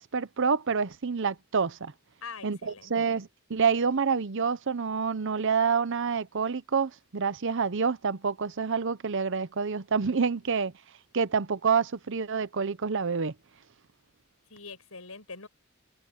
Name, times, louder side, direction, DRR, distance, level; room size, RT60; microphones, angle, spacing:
voice 1, 0.0-1.9 2.4-10.7 11.1-13.3, right 5 dB, 60° right, 0.8 m, -27 dB
voice 2, 2.2-2.9 10.6-10.7 14.5-15.5, left 4 dB, 80° left, 6.9 m, -43 dB
head